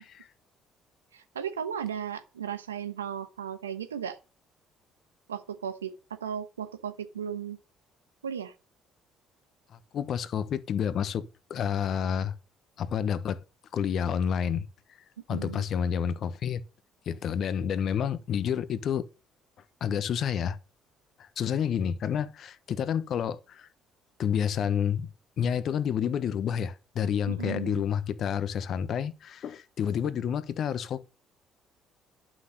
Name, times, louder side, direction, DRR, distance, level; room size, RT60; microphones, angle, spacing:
voice 1, 1.1-4.2 5.3-5.9 6.2-7.6 8.2-8.5 15.3-15.6 27.3-27.8, right 8 dB, 90° right, 1.1 m, -35 dB
voice 2, 9.9-12.4 12.8-13.4 13.7-14.7 15.3-16.6 17.1-19.1 19.8-20.6 21.2-23.7 24.2-25.1 25.4-31.0, left 8 dB, 55° left, 1.1 m, -29 dB
11.5 x 6.2 x 6.4 m
hypercardioid pair, 50°, 0 cm